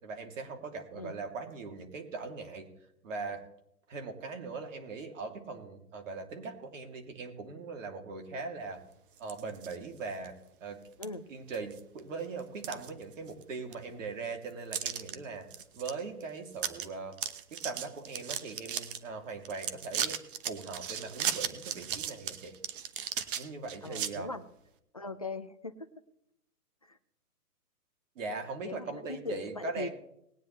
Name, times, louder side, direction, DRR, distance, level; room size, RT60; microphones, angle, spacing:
voice 1, 0.0-2.7 3.0-3.4 3.9-8.8 9.2-10.8 11.3-15.5 15.8-17.2 17.5-20.2 20.5-22.6 23.4-24.3 28.2-29.9, right 4 dB, 55° right, 4 dB, 2.8 m, -40 dB
sound 1, 9.2-9.8 10.2-10.3 11.0-11.1 11.5-12.0 12.4-13.4 13.7-13.8 14.7-15.1 15.5-15.9 16.2-16.3 16.5-16.9 17.1-19.0 19.4-24.1, right 9 dB, 35° right, 1.0 m, -36 dB
voice 2, 23.8-24.4 24.9-25.9 26.8-27.0 28.6-29.9, left 3 dB, 25° left, 9 dB, 0.4 m, -40 dB
20.0 x 9.4 x 3.2 m, 0.76 s
hypercardioid pair, 145°, 46 cm